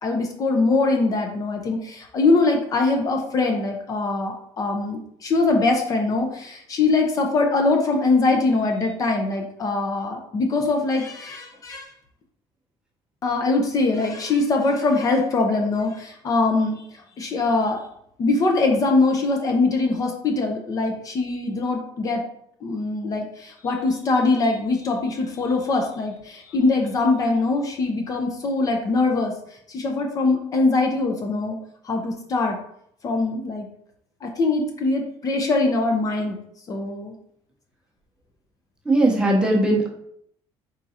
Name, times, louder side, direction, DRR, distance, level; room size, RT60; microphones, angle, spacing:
voice 1, 0.0-11.9 13.2-17.8 18.2-22.2 22.6-29.3 29.7-31.6 31.8-32.6 33.0-33.7 34.2-36.4 36.7-37.1, left 3 dB, 35° left, 2 dB, 0.6 m, -22 dB
voice 2, 38.9-39.9, right 1 dB, 10° right, -2 dB, 0.8 m, -19 dB
4.4 x 3.7 x 2.7 m, 0.71 s
cardioid pair, 150°, 10 cm